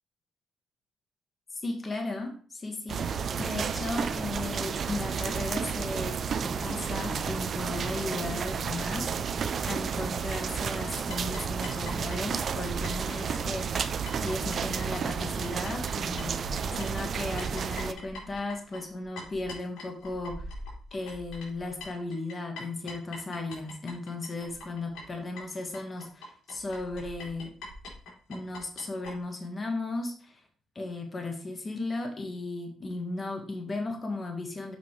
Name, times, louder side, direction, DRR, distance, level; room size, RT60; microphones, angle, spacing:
voice 1, 1.6-3.1 3.4-13.7 14.2-20.5 20.9-27.5 28.3-30.4 30.7-34.8, left 2 dB, 30° left, 3 dB, 1.4 m, -36 dB
sound 1, 2.9-17.9, right 6 dB, 50° right, 0.5 m, -32 dB
sound 2, 11.1-15.9 16.2-29.1, left 2 dB, 85° left, 3.1 m, -43 dB
6.9 x 5.4 x 3.2 m, 0.43 s
cardioid pair, 90°, 0 cm